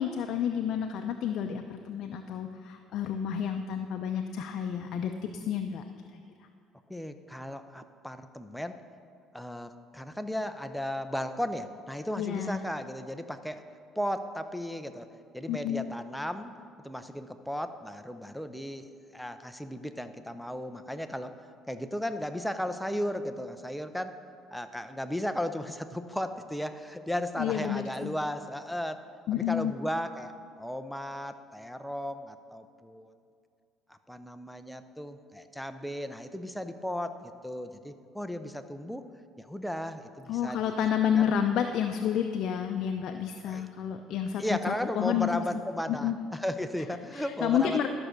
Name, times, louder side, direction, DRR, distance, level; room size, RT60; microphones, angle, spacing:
voice 1, 0.0-5.8 6.1-6.2 12.2-12.6 15.5-15.9 27.4-28.1 29.3-29.7 40.3-45.6 45.9-46.2 47.1-47.9, left 9 dB, 60° left, 5 dB, 0.5 m, -30 dB
voice 2, 6.9-8.8 9.3-13.6 14.0-15.1 15.3-16.6 16.8-21.4 21.7-24.2 24.5-29.0 29.3-30.3 30.6-33.1 33.9-39.1 39.4-40.7 41.2-41.3 43.5-43.7 44.4-47.9, equal, ahead, 9 dB, 0.6 m, -35 dB
12.5 x 6.1 x 6.6 m, 2.3 s
cardioid pair, 120°, 0 cm